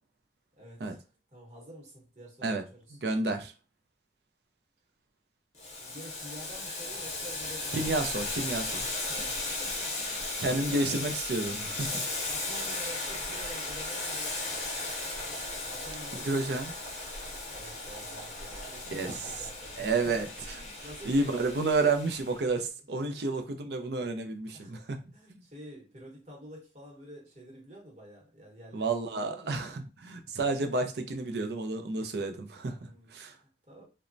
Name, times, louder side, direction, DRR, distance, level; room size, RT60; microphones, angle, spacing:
voice 1, 0.6-1.0 1.3-3.0 5.8-7.8 9.1-10.8 11.6-14.7 15.7-16.6 17.5-21.7 23.1-23.3 24.5-29.0 29.2-29.7 32.9-33.8, equal, 35° right, 1.0 m, -49 dB
voice 2, 3.0-3.5 7.7-9.1 10.4-11.9 16.2-16.7 18.9-19.1 19.8-20.6 21.1-25.0 25.3-25.4 28.7-32.8 33.1-33.3, right 3 dB, 60° right, 0.4 m, -30 dB
Boiling, 5.6-22.4, left 2 dB, 40° left, 0.8 m, -36 dB
3.0 x 2.1 x 2.5 m
head